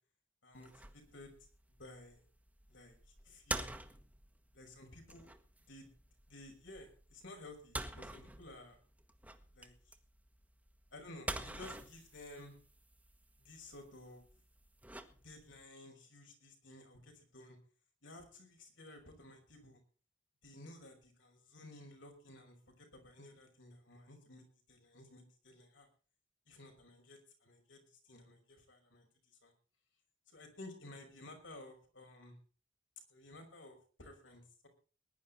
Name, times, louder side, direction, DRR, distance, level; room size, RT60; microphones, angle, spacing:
voice 1, 0.4-1.4 1.7-2.2 2.7-2.9 3.2-3.7 4.5-5.3 5.7-5.9 6.3-8.8 9.5-9.7 10.9-12.6 13.4-14.2 15.1-17.6 18.0-19.8 20.4-25.9 26.5-29.1 29.4-29.5 30.3-32.4 33.1-34.7, left 2 dB, 85° left, 3 dB, 5.7 m, -54 dB
sound 1, 0.5-15.6, right 2 dB, 10° right, 1.2 m, -48 dB
20.5 x 11.0 x 4.0 m, 0.38 s
head